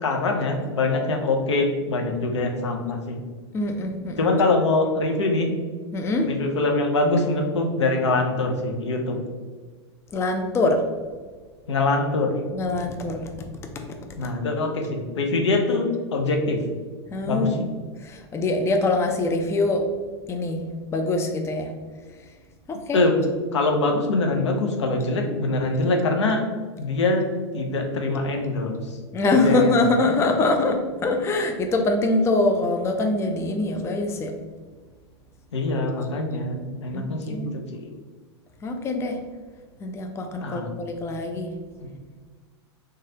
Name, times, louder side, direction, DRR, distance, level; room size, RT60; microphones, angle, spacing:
voice 1, 0.0-3.2 4.2-5.5 6.2-9.2 11.7-12.4 14.2-16.6 17.3-17.6 22.9-23.2 23.5-26.4 26.8-27.2 27.5-28.7 29.3-29.8 35.5-37.9 40.4-40.7, left 2 dB, 80° left, 3 dB, 0.6 m, -23 dB
voice 2, 3.5-4.3 5.9-6.3 10.1-10.8 12.5-13.5 13.7-14.0 17.1-17.7 18.0-19.9 20.3-20.6 20.9-21.7 22.7-23.0 29.1-34.3 36.9-37.0 37.3-37.5 38.6-39.2 39.8-41.5, left 2 dB, 20° left, 4 dB, 0.4 m, -24 dB
3.1 x 2.3 x 2.7 m, 1.4 s
hypercardioid pair, 95°, 14 cm